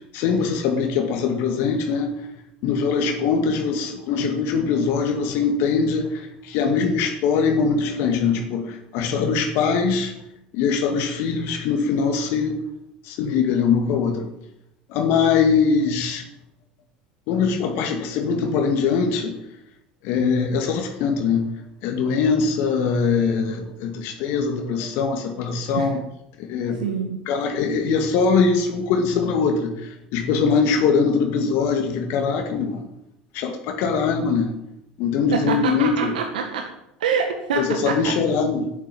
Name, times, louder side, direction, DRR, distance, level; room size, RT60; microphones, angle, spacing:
voice 1, 0.1-2.1 2.6-10.1 10.5-12.6 13.0-14.3 14.9-16.2 17.3-19.4 20.0-21.5 21.8-26.0 26.5-26.8 27.3-32.8 33.3-34.5 35.0-36.1 37.6-38.7, left 5 dB, 60° left, 3 dB, 2.2 m, -22 dB
voice 2, 26.8-27.2 35.3-36.7 37.0-38.1, right 6 dB, 80° right, 4 dB, 1.8 m, -25 dB
10.5 x 9.5 x 9.4 m, 0.85 s
hypercardioid pair, 75°, 4 cm